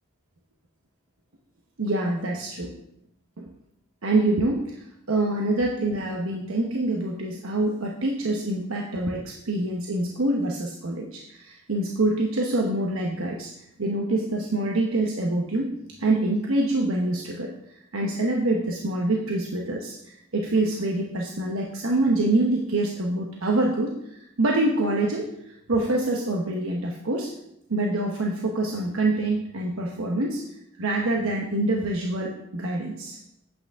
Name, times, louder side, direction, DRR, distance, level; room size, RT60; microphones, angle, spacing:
voice 1, 1.8-2.7 3.4-3.5 4.0-13.5 13.8-15.7 16.0-17.5 17.9-19.9 20.3-25.3 25.7-27.3 27.7-30.4 30.8-33.2, right 2 dB, 80° right, 0 dB, 1.0 m, -25 dB
8.4 x 8.3 x 3.6 m, 0.78 s
head